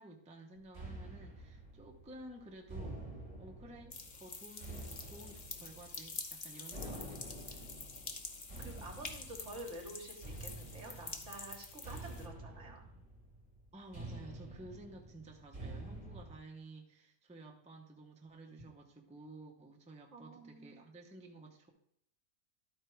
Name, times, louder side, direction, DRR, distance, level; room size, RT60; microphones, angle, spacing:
voice 1, 0.0-3.0 3.4-7.7 13.7-21.7, right 1 dB, 5° right, 0 dB, 0.7 m, -53 dB
sound 1, 0.7-16.4, right 2 dB, 25° right, 2.3 m, -49 dB
sound 2, 3.9-12.3, left 4 dB, 40° left, 0.8 m, -47 dB
voice 2, 8.6-12.9 20.1-20.9, right 1 dB, 55° right, 2 dB, 1.7 m, -49 dB
12.0 x 4.5 x 4.5 m, 0.76 s
omnidirectional pair, 1.5 m